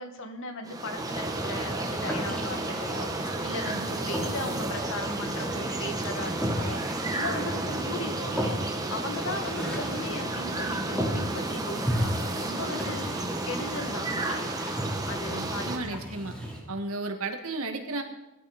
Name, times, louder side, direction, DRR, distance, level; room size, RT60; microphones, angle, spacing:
voice 1, 0.0-13.1 13.4-14.4 15.1-16.0, left 2 dB, 60° left, 4 dB, 2.3 m, -38 dB
sound 1, 0.7-15.8, right 2 dB, 15° right, 1.5 m, -32 dB
sound 2, 1.0-16.6, equal, 5° left, 4.4 m, -36 dB
voice 2, 3.7-4.0 13.1-13.3 15.3-16.3 16.7-18.0, right 2 dB, 70° right, 4 dB, 2.2 m, -34 dB
20.0 x 13.5 x 4.4 m, 0.98 s
head